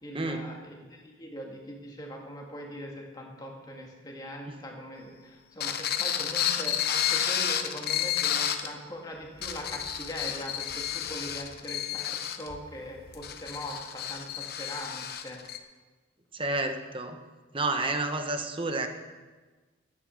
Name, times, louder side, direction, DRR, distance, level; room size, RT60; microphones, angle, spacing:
voice 1, 0.0-15.4, equal, 20° left, 0 dB, 2.1 m, -41 dB
sound 1, 5.6-8.7 9.2-15.6, left 10 dB, 50° left, 0.8 m, -31 dB
voice 2, 16.3-17.2 17.5-18.9, right 2 dB, 25° right, 6 dB, 1.0 m, -30 dB
12.0 x 9.8 x 6.4 m, 1.3 s
head